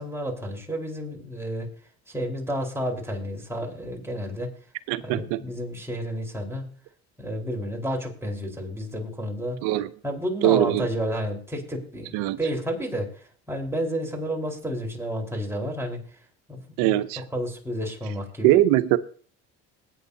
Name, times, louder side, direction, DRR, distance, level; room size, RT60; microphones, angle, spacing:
voice 1, 0.0-1.7 2.1-4.5 5.0-6.7 7.2-9.6 10.0-16.0 16.5-18.6, equal, 10° right, 4.5 m, -31 dB
voice 2, 4.9-5.4 9.6-9.9 10.4-10.9 12.1-12.4 16.8-17.2 18.4-19.0, right 14 dB, 80° right, 0.9 m, -21 dB
20.0 x 9.4 x 2.8 m
supercardioid pair, 80°, 33 cm